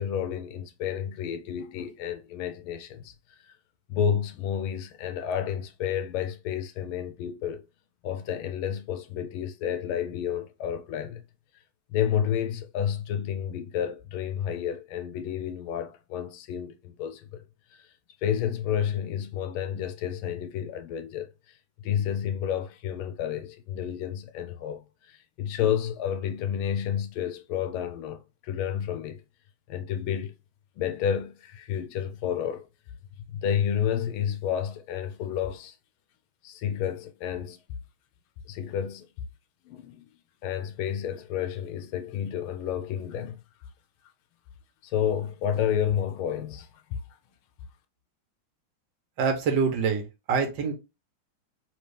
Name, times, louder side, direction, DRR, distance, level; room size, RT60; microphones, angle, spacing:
voice 1, 0.0-3.1 3.4-3.5 3.9-7.6 8.0-11.2 11.9-17.4 17.7-17.9 18.2-21.6 21.8-29.2 29.7-30.3 30.8-32.6 33.3-35.7 36.4-37.6 38.5-39.1 39.7-40.1 40.4-43.4 44.8-47.0, left 9 dB, 80° left, 1.4 m, -30 dB
voice 2, 49.2-50.7, right 5 dB, 65° right, 1.5 m, -25 dB
4.4 x 2.9 x 3.3 m
omnidirectional pair, 2.3 m